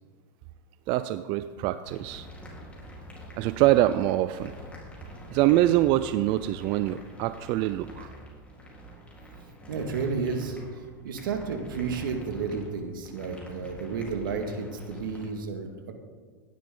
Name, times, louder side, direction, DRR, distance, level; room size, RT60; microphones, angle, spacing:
voice 1, 0.9-2.3 3.4-4.5 5.3-8.1, right 15 dB, 50° right, 13 dB, 0.4 m, -24 dB
sound 1, 1.8-15.3, equal, 10° left, 3.8 m, -45 dB
voice 2, 9.7-15.9, right 5 dB, 80° right, 4 dB, 1.9 m, -32 dB
16.0 x 11.0 x 3.8 m, 1.5 s
hypercardioid pair, 110°, 11 cm